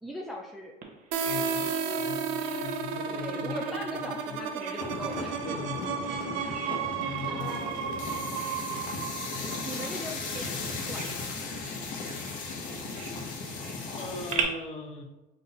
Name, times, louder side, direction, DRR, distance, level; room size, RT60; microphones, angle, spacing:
voice 1, 0.0-0.7 3.1-5.4 7.3-7.9 9.6-11.4, equal, ahead, -1 dB, 0.3 m, -40 dB
Bird vocalization bird call bird song, 0.8-14.4, right 7 dB, 40° right, 0.9 m, -43 dB
sound 1, 1.1-10.7, right 6 dB, 80° right, 0.5 m, -33 dB
voice 2, 1.2-4.4 5.4-6.2 7.0-8.3 9.3-9.7 14.0-15.0, left 3 dB, 35° left, 2 dB, 0.8 m, -41 dB
sound 2, 4.8-14.3, left 4 dB, 70° left, 1.0 m, -37 dB
4.0 x 2.5 x 4.1 m, 1.0 s
cardioid pair, 135°, 19 cm